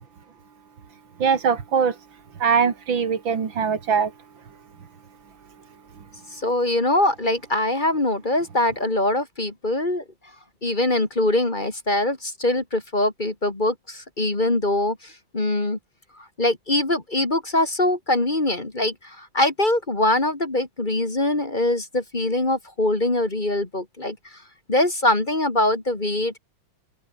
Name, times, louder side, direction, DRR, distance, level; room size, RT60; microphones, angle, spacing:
voice 1, 1.2-1.9 2.4-4.1, right 6 dB, 80° right, 2.9 m, -21 dB
voice 2, 6.3-10.0 10.6-15.8 16.4-24.2 24.7-26.4, left 1 dB, 25° left, 2.4 m, -23 dB
open air
omnidirectional pair, 2.1 m